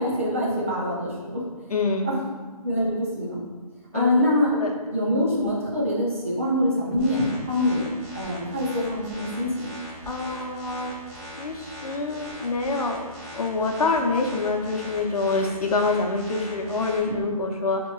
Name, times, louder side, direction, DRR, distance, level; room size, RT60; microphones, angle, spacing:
voice 1, 0.0-1.4 2.0-2.2 2.6-3.4 3.9-4.5 4.9-7.2 7.4-7.9 8.1-9.7 17.1-17.3, left 1 dB, 20° right, -5 dB, 0.5 m, -24 dB
voice 2, 1.7-2.3 3.9-4.1 4.5-4.7 10.1-10.9 11.4-13.1 13.3-17.8, left 3 dB, 75° left, 2 dB, 0.7 m, -26 dB
sound 1, 7.0-17.0, equal, 10° left, 0.7 m, -40 dB
6.8 x 2.9 x 2.3 m, 1.3 s
hypercardioid pair, 175°, 19 cm